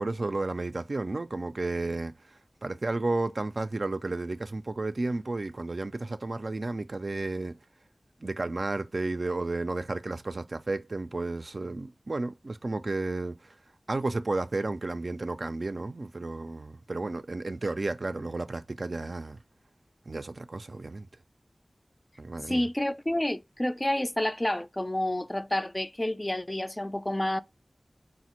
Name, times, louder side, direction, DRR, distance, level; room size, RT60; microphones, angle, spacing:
voice 1, 0.0-2.1 2.6-7.5 8.2-13.5 13.9-19.4 20.1-21.1 22.2-22.7, right 2 dB, 60° right, 0.3 m, -32 dB
voice 2, 22.5-27.4, left 1 dB, 20° left, 0.3 m, -29 dB
4.1 x 2.1 x 2.9 m
wide cardioid pair, 55°, 0 cm